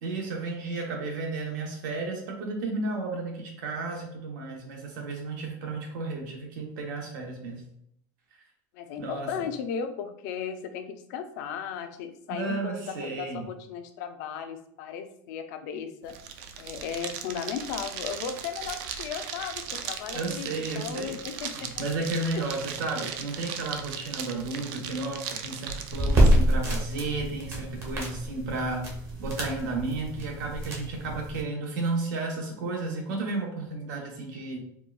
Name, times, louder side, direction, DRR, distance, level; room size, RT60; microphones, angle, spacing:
voice 1, 0.0-7.6 9.0-9.3 12.3-13.4 20.1-21.2 21.5-28.9 29.2-34.6, right 3 dB, 80° right, 1 dB, 0.9 m, -33 dB
voice 2, 8.7-16.1 16.6-21.8 22.2-22.5, left 7 dB, 70° left, 8 dB, 0.4 m, -36 dB
sound 1, 16.0-26.4, right 7 dB, 55° right, 0.3 m, -38 dB
sound 2, 25.9-31.4, right 1 dB, 25° right, 0.8 m, -26 dB
4.3 x 2.2 x 2.3 m, 0.71 s
cardioid pair, 165°, 10 cm